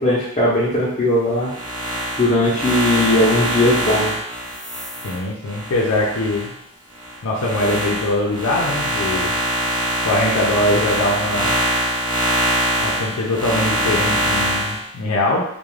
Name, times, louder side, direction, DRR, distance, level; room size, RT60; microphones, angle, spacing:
voice 1, 0.0-1.5 2.2-4.1, left 1 dB, 25° left, -10 dB, 0.6 m, -18 dB
sound 1, 1.4-6.5 6.9-14.8, right 1 dB, 20° right, 0.6 m, -23 dB
voice 2, 5.0-6.5 7.2-9.4 10.0-11.6 12.8-15.4, left 1 dB, 80° left, -3 dB, 0.5 m, -22 dB
2.4 x 2.1 x 3.1 m, 0.75 s
head